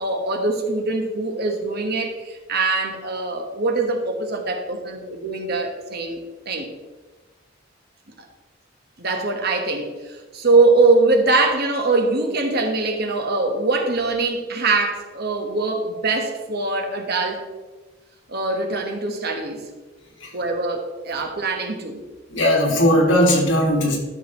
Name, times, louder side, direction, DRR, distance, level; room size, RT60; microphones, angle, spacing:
voice 1, 0.0-6.2 6.4-6.7 8.2-8.3 9.0-17.4 18.3-19.7 20.3-22.0, right 3 dB, 55° right, 3 dB, 1.3 m, -22 dB
voice 2, 22.3-24.0, equal, 80° left, -1 dB, 2.3 m, -18 dB
12.5 x 6.4 x 3.1 m, 1.2 s
head